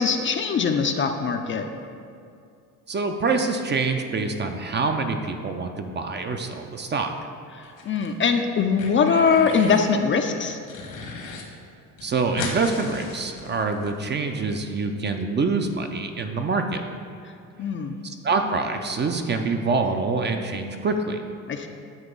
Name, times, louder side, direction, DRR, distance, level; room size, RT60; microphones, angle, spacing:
voice 1, 0.0-1.6 7.6-10.6 17.6-18.0 21.5-21.7, left 5 dB, 30° left, 5 dB, 0.4 m, -22 dB
voice 2, 2.9-7.1 12.0-16.8 18.0-21.2, right 4 dB, 30° right, 5 dB, 0.5 m, -25 dB
sound 1, 7.6-8.3 8.6-9.9 10.2-11.4 11.7-11.8 12.0-13.9, left 4 dB, 70° left, 1.2 m, -36 dB
8.0 x 2.9 x 5.3 m, 2.3 s
supercardioid pair, 75°, 38 cm